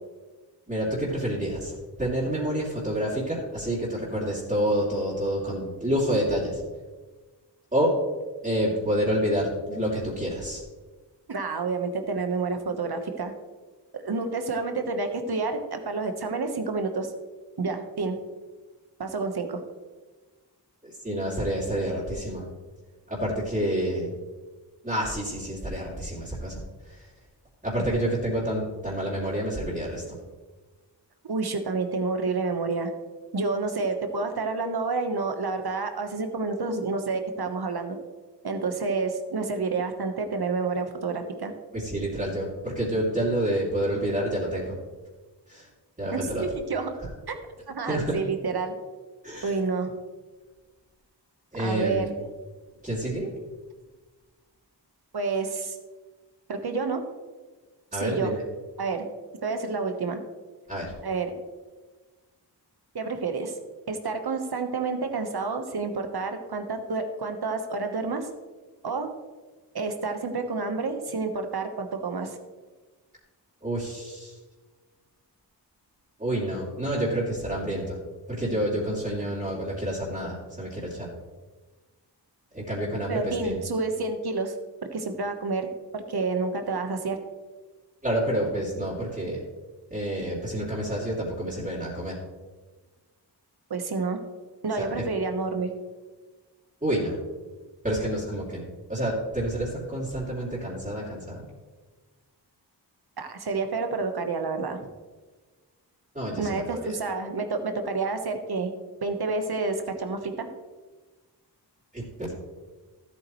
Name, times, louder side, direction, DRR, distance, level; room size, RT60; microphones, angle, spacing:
voice 1, 0.7-6.6 7.7-8.0 8.4-10.6 20.8-22.5 23.1-24.1 24.8-26.6 26.9-27.1 27.6-30.2 41.7-44.8 45.5-45.7 46.0-46.5 47.0-47.1 47.9-48.2 49.2-49.5 51.5-52.1 52.8-53.3 57.9-58.4 60.7-60.9 73.6-74.4 76.2-78.0 78.3-81.1 82.5-83.6 88.0-89.4 89.9-92.2 94.8-95.0 96.8-97.2 97.8-98.6 98.9-101.4 106.1-106.9 111.9-112.3, right 1 dB, 20° right, -8 dB, 2.9 m, -28 dB
voice 2, 11.3-13.3 14.0-17.1 17.6-18.2 19.0-19.6 31.2-32.9 33.3-38.0 38.4-41.5 46.1-46.9 47.3-47.4 47.7-48.7 49.4-49.9 51.6-52.1 55.1-55.8 56.5-57.0 58.0-58.3 58.8-59.0 59.4-60.2 61.0-61.3 62.9-63.6 63.9-68.3 68.8-69.1 69.7-72.4 83.1-84.5 84.9-87.2 93.7-94.2 94.6-95.7 103.2-104.8 106.4-108.7 109.0-110.5, right 4 dB, 60° right, 6 dB, 1.3 m, -29 dB
13.5 x 8.5 x 3.2 m, 1.3 s
wide cardioid pair, 70°, 42 cm